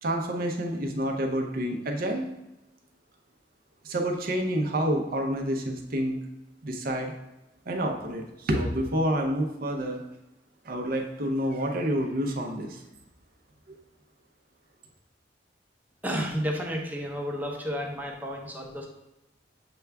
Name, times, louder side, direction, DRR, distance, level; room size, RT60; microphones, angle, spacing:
voice 1, 0.0-2.3 3.8-6.2 6.6-7.1 7.7-10.0 10.6-12.8 13.7-13.8, equal, 55° right, 2 dB, 0.6 m, -28 dB
voice 2, 16.0-18.9, equal, 10° right, 0 dB, 0.6 m, -31 dB
6.8 x 2.3 x 3.4 m, 0.95 s
head